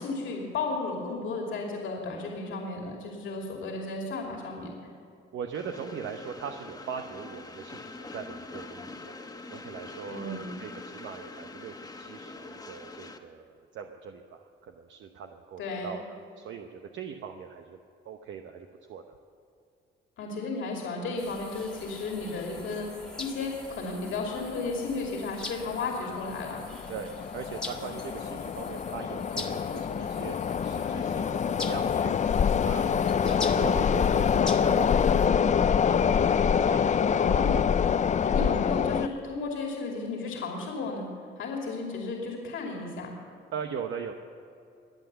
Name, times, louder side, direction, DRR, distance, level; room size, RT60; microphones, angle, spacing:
voice 1, 0.0-4.7 10.1-10.6 15.6-15.9 20.2-26.6 37.2-37.7 38.2-41.1 41.4-43.1, left 3 dB, 75° left, 0 dB, 2.6 m, -34 dB
voice 2, 5.3-9.1 9.5-17.8 18.0-19.0 26.9-32.1 32.6-32.9 33.2-36.0 36.7-37.4 37.9-38.2 43.5-44.1, right 7 dB, 70° right, 5 dB, 0.9 m, -40 dB
Train, 5.5-13.2, left 3 dB, 20° left, 1.4 m, -44 dB
sound 1, 21.2-35.3, left 2 dB, 5° left, 1.8 m, -44 dB
sound 2, 22.2-22.3 22.5-22.6 23.4-23.6 23.9-24.0 24.6-25.0 25.4-39.1, left 7 dB, 35° left, 0.5 m, -26 dB
22.5 x 8.1 x 6.9 m, 2.6 s
cardioid pair, 90°, 20 cm